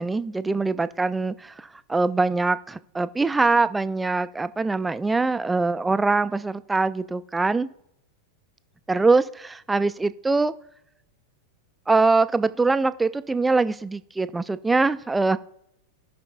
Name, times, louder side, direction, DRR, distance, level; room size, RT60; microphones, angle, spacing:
voice 1, 0.0-7.7 8.9-10.5 11.9-15.4, right 3 dB, 10° right, 0.3 m, -23 dB
17.0 x 5.9 x 2.2 m
figure-of-eight pair, 90°, 0 cm